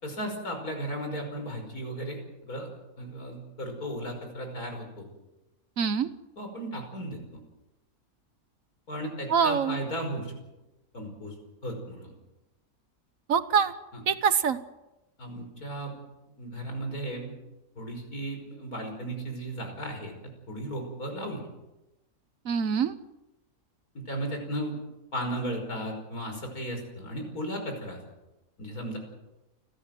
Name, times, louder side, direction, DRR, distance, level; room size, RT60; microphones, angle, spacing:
voice 1, 0.0-2.7 3.0-5.1 6.4-7.4 8.9-10.3 10.9-11.3 11.6-12.1 13.9-14.0 15.2-15.9 16.4-17.4 17.8-21.5 23.9-24.8 25.1-28.0 28.6-29.0, right 1 dB, 80° left, 3 dB, 5.9 m, -35 dB
voice 2, 5.8-6.1 9.3-9.8 13.3-13.7 14.1-14.6 22.4-22.9, right 7 dB, 65° right, 13 dB, 1.4 m, -24 dB
29.5 x 13.0 x 7.8 m, 1.0 s
omnidirectional pair, 1.5 m